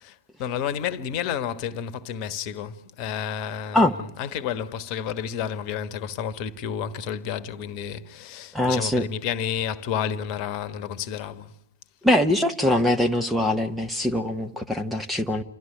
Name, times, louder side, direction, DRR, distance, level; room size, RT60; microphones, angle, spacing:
voice 1, 0.0-11.5, left 8 dB, 35° left, 1.3 m, -31 dB
voice 2, 8.5-9.0 12.0-15.4, left 1 dB, ahead, 0.9 m, -22 dB
28.5 x 13.0 x 10.0 m
figure-of-eight pair, 105°, 0 cm